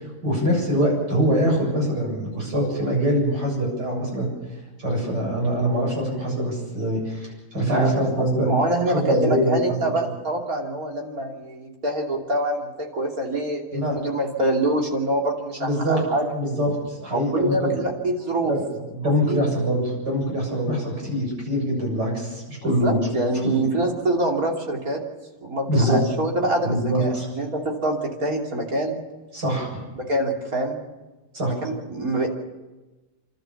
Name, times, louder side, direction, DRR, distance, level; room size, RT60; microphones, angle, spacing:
voice 1, 0.2-4.3 4.8-8.5 8.9-9.9 13.7-14.0 15.6-16.0 16.3-17.8 18.4-18.6 18.9-23.1 23.4-23.5 25.7-26.0 26.6-27.3 29.3-29.8 31.3-31.5, equal, 90° right, -2 dB, 8.4 m, -23 dB
voice 2, 8.4-16.3 17.1-18.5 19.3-19.4 22.8-25.0 25.4-28.9 30.0-30.8 31.5-32.3, right 1 dB, 55° right, 0 dB, 3.5 m, -25 dB
29.0 x 13.0 x 7.2 m, 1.2 s
omnidirectional pair, 1.8 m